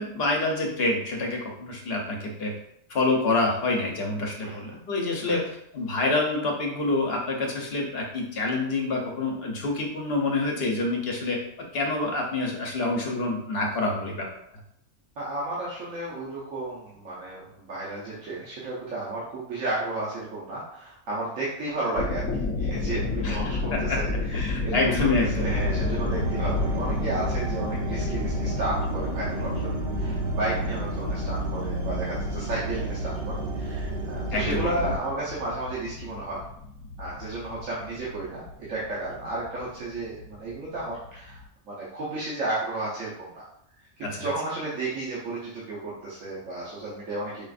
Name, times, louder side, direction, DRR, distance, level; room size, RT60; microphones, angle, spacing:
voice 1, 0.0-2.5 2.9-11.4 11.7-14.3 23.2-23.4 23.7-24.0 24.3-25.6 34.3-34.9 44.0-44.3, left 2 dB, 55° left, 0 dB, 0.9 m, -27 dB
voice 2, 15.2-22.3 22.6-24.9 25.3-36.4 37.0-38.4 38.7-43.4 44.1-47.5, right 2 dB, 80° right, -7 dB, 1.2 m, -33 dB
sound 1, 21.8-41.5, left 3 dB, 80° left, 1.0 m, -33 dB
sound 2, 25.4-35.0, right 2 dB, 60° right, 0.7 m, -30 dB
4.8 x 2.5 x 2.4 m, 0.74 s
omnidirectional pair, 1.4 m